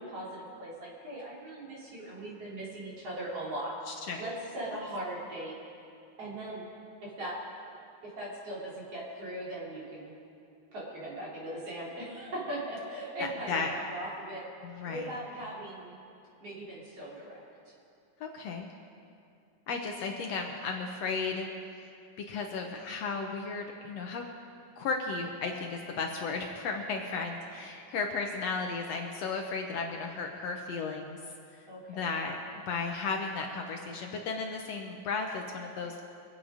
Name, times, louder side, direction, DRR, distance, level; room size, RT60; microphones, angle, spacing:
voice 1, 0.0-3.7 4.2-5.8 6.2-6.7 7.0-7.3 8.0-10.1 10.7-14.4 14.8-16.0 16.4-17.4 31.7-32.1, right 1 dB, 50° right, -6 dB, 4.4 m, -39 dB
voice 2, 14.6-15.2 18.2-18.7 19.7-21.5 22.3-24.2 24.8-31.2 31.9-32.4 32.7-36.0, left 4 dB, 70° left, 2 dB, 1.8 m, -34 dB
24.5 x 8.9 x 5.0 m, 2.5 s
omnidirectional pair, 3.5 m